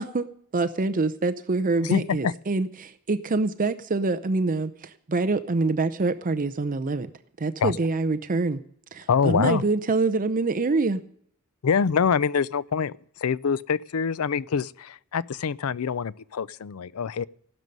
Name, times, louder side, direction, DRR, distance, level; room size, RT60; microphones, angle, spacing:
voice 1, 0.0-7.1 7.4-8.6 8.9-11.0, right 3 dB, 40° right, 0.6 m, -25 dB
voice 2, 1.9-2.3 7.6-7.7 9.1-9.6 11.6-12.9 13.2-17.3, left 6 dB, 75° left, 0.5 m, -25 dB
15.5 x 12.5 x 5.3 m
head